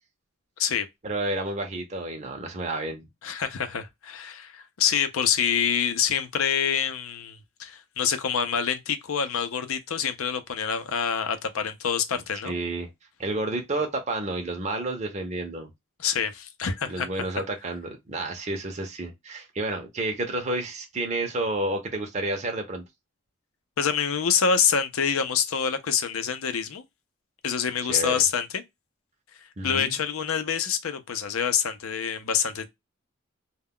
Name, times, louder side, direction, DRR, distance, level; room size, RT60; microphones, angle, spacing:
voice 1, 1.0-3.1 12.4-12.9 13.2-15.7 16.8-22.8 27.9-28.2 29.6-30.0, right 2 dB, 35° right, 0.6 m, -30 dB
voice 2, 3.2-12.5 16.0-17.1 23.8-26.8 27.4-28.6 29.6-32.7, left 7 dB, 80° left, 0.5 m, -26 dB
2.2 x 2.2 x 3.5 m
head